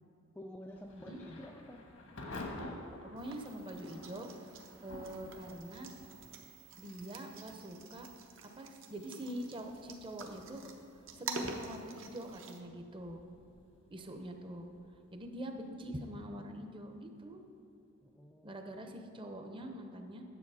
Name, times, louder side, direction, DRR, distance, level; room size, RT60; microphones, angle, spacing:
voice 1, 0.4-1.9 18.0-18.6, equal, 10° left, 1 dB, 0.3 m, -49 dB
Thunder / Rain, 0.7-17.4, left 1 dB, 80° left, 1.3 m, -52 dB
voice 2, 3.0-4.3 4.6-5.9 6.8-8.1 8.4-10.6 11.2-13.2 13.9-14.7 15.1-17.4 18.4-20.2, right 1 dB, 25° right, 5 dB, 0.7 m, -44 dB
sound 1, 3.2-12.6, right 4 dB, 60° right, 0.8 m, -48 dB
10.0 x 7.0 x 4.8 m, 2.9 s
head